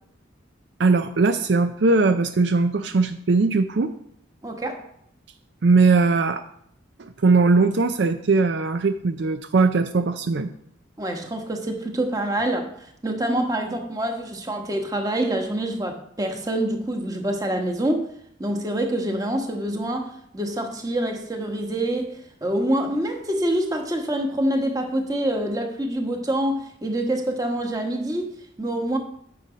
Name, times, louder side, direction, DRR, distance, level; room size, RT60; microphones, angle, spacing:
voice 1, 0.8-3.9 5.6-6.4 7.0-10.5, right 3 dB, 60° right, 9 dB, 0.5 m, -20 dB
voice 2, 4.4-4.8 11.0-18.1 18.4-29.0, right 1 dB, 20° right, 3 dB, 1.2 m, -26 dB
9.4 x 6.8 x 5.0 m, 0.70 s
head